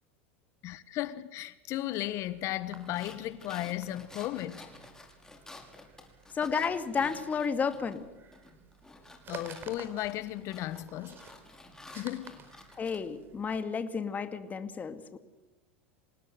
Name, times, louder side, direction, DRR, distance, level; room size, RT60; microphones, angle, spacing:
voice 1, 0.6-4.7 9.3-11.2 11.9-12.4, left 14 dB, 50° left, 1.4 m, -35 dB
sound 1, 2.0-13.5, right 6 dB, 35° right, 4.8 m, -53 dB
sound 2, 2.7-8.0 8.3-13.0, left 2 dB, 10° left, 5.8 m, -51 dB
voice 2, 6.3-8.0 12.7-15.2, left 6 dB, 25° left, 2.3 m, -32 dB
27.5 x 19.0 x 8.0 m
hypercardioid pair, 95°, 6 cm